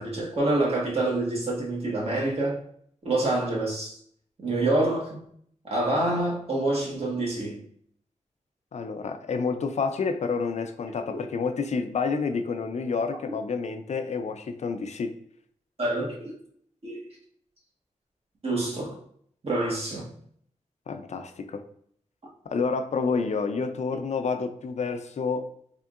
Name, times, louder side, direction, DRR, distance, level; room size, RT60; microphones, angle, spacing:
voice 1, 0.0-2.6 3.0-4.0 4.4-5.2 5.6-7.6 15.8-16.3 16.8-17.0 18.4-19.0 19.4-20.1, right 2 dB, 50° right, 1.3 m, -27 dB
voice 2, 8.7-15.1 20.9-21.6 22.5-25.5, left 5 dB, 60° left, 0.4 m, -29 dB
3.6 x 3.5 x 2.4 m
wide cardioid pair, 85°, 13 cm